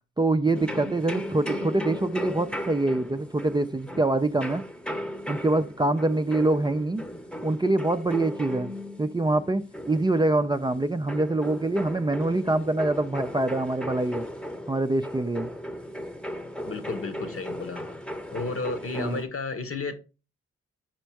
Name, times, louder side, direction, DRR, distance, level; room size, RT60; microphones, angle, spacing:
voice 1, 0.2-4.6 5.3-7.0 7.4-8.7 9.0-14.3 14.7-15.5 19.0-19.2, right 2 dB, 15° right, 0.5 m, -25 dB
sound 1, 0.5-19.3, equal, 5° left, 0.9 m, -37 dB
voice 2, 16.6-17.8 18.3-19.9, left 4 dB, 50° left, 1.1 m, -33 dB
5.1 x 4.4 x 4.6 m
supercardioid pair, 40°, 29 cm